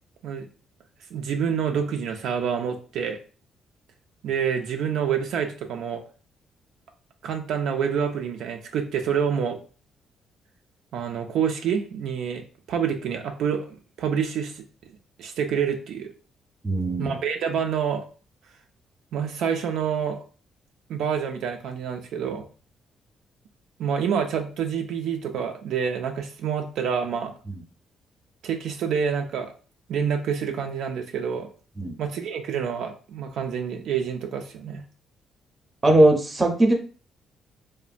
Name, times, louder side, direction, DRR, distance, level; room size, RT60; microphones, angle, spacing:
voice 1, 1.1-3.2 4.2-6.0 7.2-9.6 10.9-12.4 12.7-14.6 15.2-16.1 17.0-18.1 19.1-20.2 20.9-22.5 23.8-27.3 28.4-29.5 29.9-31.5 32.0-34.8, right 7 dB, 80° right, 4 dB, 0.3 m, -27 dB
voice 2, 16.6-17.2 31.8-31.9 35.8-36.7, right 1 dB, 25° right, 4 dB, 0.6 m, -19 dB
3.0 x 2.1 x 2.4 m, 0.39 s
cardioid pair, 90°, 0 cm